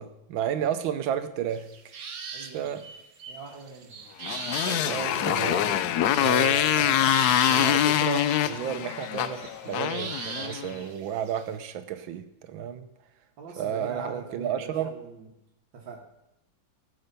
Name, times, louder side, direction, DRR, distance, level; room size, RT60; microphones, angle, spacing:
voice 1, 0.0-1.9 2.5-2.8 4.7-5.8 6.1-12.9 13.6-14.9, right 9 dB, 90° right, 1.7 m, -32 dB
sound 1, 1.5-4.8 5.3-5.4 6.5-8.3 8.6-11.5, right 5 dB, 50° right, 1.4 m, -39 dB
voice 2, 2.3-2.9 3.3-4.0 13.4-15.3 15.7-16.0, right 4 dB, 75° right, 2.1 m, -42 dB
Motorcycle, 4.2-10.7, left 11 dB, 70° left, 1.0 m, -24 dB
15.5 x 7.9 x 5.4 m
omnidirectional pair, 2.1 m